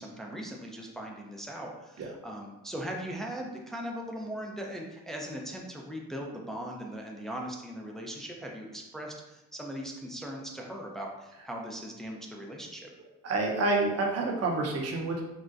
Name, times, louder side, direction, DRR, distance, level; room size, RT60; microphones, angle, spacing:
voice 1, 0.0-12.9, equal, ahead, 0 dB, 0.4 m, -39 dB
voice 2, 13.2-15.2, right 2 dB, 55° right, 1 dB, 0.7 m, -28 dB
3.7 x 2.1 x 2.4 m, 0.99 s
cardioid pair, 90°, 30 cm